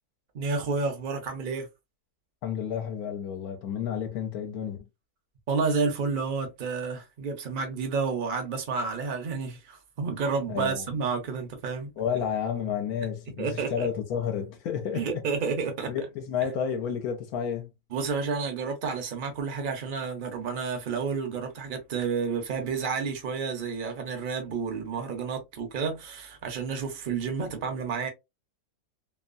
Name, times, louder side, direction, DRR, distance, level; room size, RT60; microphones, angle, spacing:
voice 1, 0.3-1.7 5.5-11.9 13.4-13.9 15.0-15.9 17.9-28.1, right 5 dB, 50° right, 0.6 m, -30 dB
voice 2, 2.4-4.8 10.5-10.9 12.0-15.2 15.9-17.7, left 8 dB, 70° left, 1.1 m, -31 dB
2.8 x 2.2 x 2.5 m
omnidirectional pair, 1.7 m